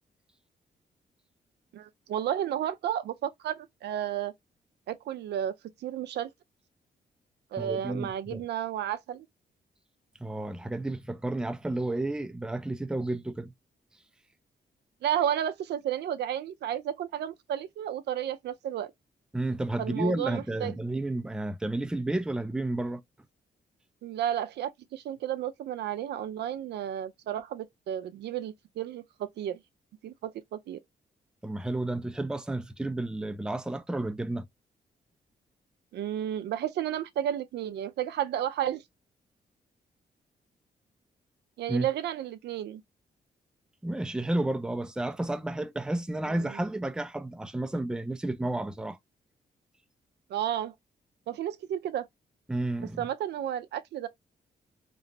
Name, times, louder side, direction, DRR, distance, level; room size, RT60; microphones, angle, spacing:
voice 1, 1.7-4.3 4.9-5.5 5.8-6.3 7.5-9.3 15.0-18.9 19.8-20.7 24.0-29.6 30.0-30.8 35.9-38.8 41.6-42.8 46.3-46.6 50.3-50.7 51.3-52.1 53.0-54.1, right 10 dB, 80° right, 0.4 m, -32 dB
voice 2, 7.6-8.4 10.2-13.5 19.3-23.0 31.4-34.5 41.7-41.9 43.8-49.0 52.5-53.0, right 2 dB, 5° right, 0.4 m, -31 dB
3.0 x 2.0 x 2.5 m
cardioid pair, 65°, 17 cm